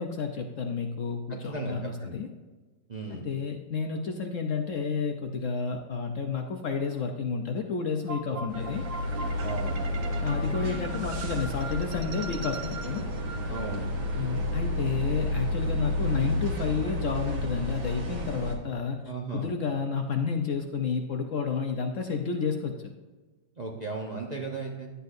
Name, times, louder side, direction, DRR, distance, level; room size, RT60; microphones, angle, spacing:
voice 1, 0.0-2.3 3.1-8.8 10.2-13.0 14.2-19.0 19.3-22.9, left 5 dB, 60° left, 4 dB, 0.9 m, -31 dB
voice 2, 1.3-2.2 2.9-3.3 8.3-8.7 9.4-9.8 13.5-13.9 19.0-19.5 23.6-24.9, right 3 dB, 40° right, -1 dB, 0.6 m, -36 dB
sound 1, 8.1-14.2, right 4 dB, 65° right, 1.3 m, -41 dB
sound 2, 8.5-18.5, left 1 dB, 85° right, 2.0 m, -31 dB
11.5 x 8.1 x 2.6 m, 1.3 s
omnidirectional pair, 1.8 m